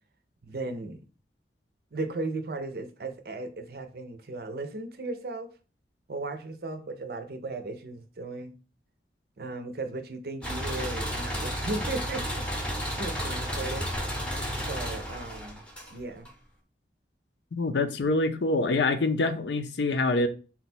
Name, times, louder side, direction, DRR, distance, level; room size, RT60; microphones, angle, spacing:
voice 1, 0.4-1.1 1.9-5.5 6.1-8.5 9.4-13.9 14.7-15.6 15.9-16.3 18.0-18.1, right 2 dB, 60° right, 0.5 m, -36 dB
sound 1, 10.4-16.3, equal, 5° left, 0.6 m, -32 dB
voice 2, 17.5-20.3, left 2 dB, 85° left, 0.5 m, -25 dB
4.0 x 2.2 x 4.2 m
head